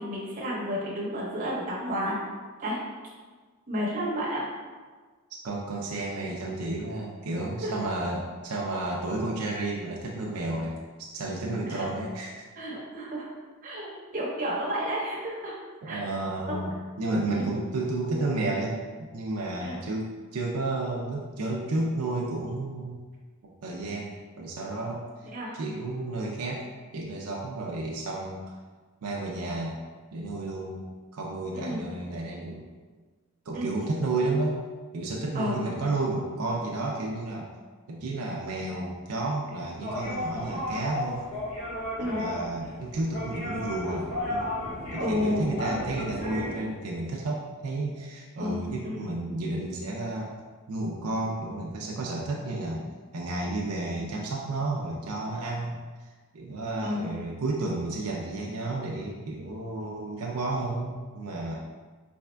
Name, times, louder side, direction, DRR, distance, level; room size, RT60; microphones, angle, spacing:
voice 1, 0.0-2.2 2.6-2.8 3.7-4.4 7.6-7.7 11.7-11.9 12.5-13.3 13.6-13.9 14.1-15.5 15.8-16.0 16.5-16.6 17.3-17.5 19.6-19.8 25.3-25.6 31.5-31.8 33.5-33.9 35.3-35.6 42.0-42.2 45.0-45.5 48.4-49.1 56.8-57.1, equal, 40° right, -6 dB, 1.0 m, -31 dB
voice 2, 5.4-10.7 11.0-12.5 15.8-18.8 19.1-23.0 23.6-25.0 25.5-26.6 26.9-28.4 29.0-29.8 30.1-32.6 33.5-34.6 34.9-37.5 37.9-41.2 42.0-44.4 44.9-50.3 50.7-52.8 53.1-61.6, right 2 dB, 85° right, -2 dB, 0.5 m, -32 dB
sound 1, 39.8-46.6, left 1 dB, 65° left, 1.4 m, -34 dB
4.2 x 3.4 x 2.2 m, 1.4 s
head